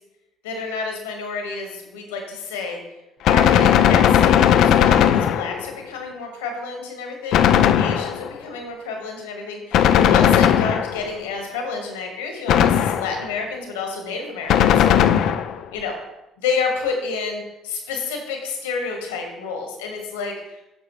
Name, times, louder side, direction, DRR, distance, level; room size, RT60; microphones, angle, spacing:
voice 1, 0.4-2.8 3.2-14.7 15.7-15.9 16.4-20.3, left 4 dB, 85° left, 3 dB, 1.5 m, -29 dB
Gunshot gunfire, 3.2-5.8 7.3-8.4 9.7-11.2 12.5-13.3 14.5-15.6, left 9 dB, 65° left, 0.4 m, -17 dB
8.4 x 6.2 x 3.1 m, 0.96 s
hypercardioid pair, 60°, 0 cm